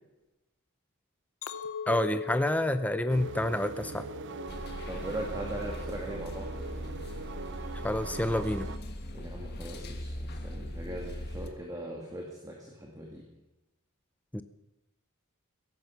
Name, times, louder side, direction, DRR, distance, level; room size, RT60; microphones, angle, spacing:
Chink clink, 1.4-5.8 6.2-6.7, left 7 dB, 70° left, 0.8 m, -41 dB
voice 1, 1.9-4.1 7.8-8.7 14.3-14.4, left 1 dB, 5° left, 10 dB, 0.5 m, -28 dB
sound 1, 3.1-8.8, right 3 dB, 55° right, 0.6 m, -41 dB
sound 2, 4.5-11.5, left 1 dB, 50° left, 1.6 m, -40 dB
voice 2, 4.9-6.5 9.1-13.2, right 1 dB, 15° right, -1 dB, 2.3 m, -40 dB
16.5 x 14.0 x 5.8 m, 1.0 s
head